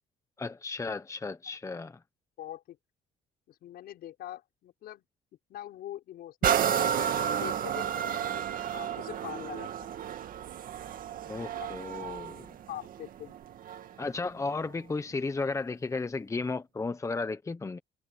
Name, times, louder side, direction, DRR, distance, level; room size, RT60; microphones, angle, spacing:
voice 1, 0.4-2.0 11.3-12.5 14.0-17.8, left 3 dB, 20° left, 1.1 m, -34 dB
voice 2, 2.4-2.8 3.5-5.0 5.5-10.1 11.5-11.7 12.7-13.4, left 12 dB, 70° left, 6.0 m, -44 dB
sound 1, 6.4-14.0 14.6-14.7, right 9 dB, 55° right, 2.0 m, -32 dB
cardioid pair, 110°, 17 cm